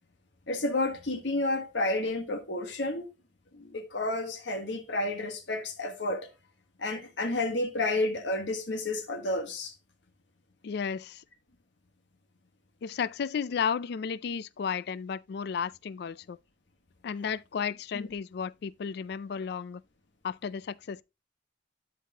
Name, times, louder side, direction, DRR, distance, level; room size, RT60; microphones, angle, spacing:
voice 1, 0.5-3.1 3.5-6.3 6.8-9.7 17.9-18.1, left 2 dB, 80° left, 1.4 m, -31 dB
voice 2, 10.6-11.2 12.8-16.4 17.0-19.8 20.2-21.0, left 6 dB, 65° left, 0.4 m, -33 dB
12.0 x 4.7 x 2.8 m
head